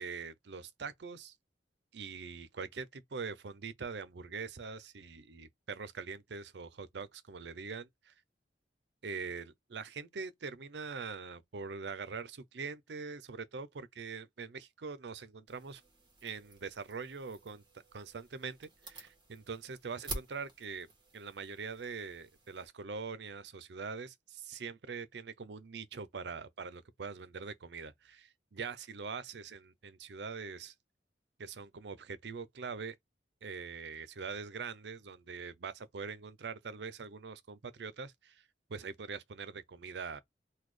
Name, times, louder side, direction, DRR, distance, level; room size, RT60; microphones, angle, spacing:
voice 1, 0.0-1.4 1.9-8.1 9.0-15.8 16.2-17.6 17.9-20.9 21.1-30.7 31.4-32.9 33.4-38.4 38.7-40.2, right 5 dB, 70° right, 0.6 m, -43 dB
sound 1, 15.5-22.7, right 2 dB, 25° right, 1.4 m, -49 dB
4.0 x 2.3 x 3.2 m
head